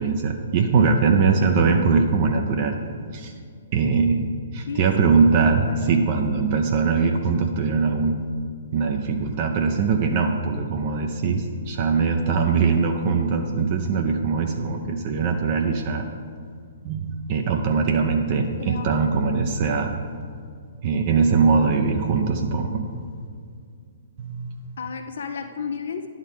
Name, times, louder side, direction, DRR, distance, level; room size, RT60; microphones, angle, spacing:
voice 1, 0.0-2.8 3.1-3.3 3.7-4.3 4.5-8.2 8.7-16.1 16.8-20.0 20.8-22.9 24.2-24.7, right 5 dB, 40° right, 3 dB, 0.6 m, -21 dB
voice 2, 4.7-5.3 5.7-6.0 18.6-19.0 24.8-26.1, left 6 dB, 60° left, 6 dB, 0.6 m, -33 dB
11.0 x 3.7 x 6.4 m, 2.2 s
figure-of-eight pair, 120°, 0 cm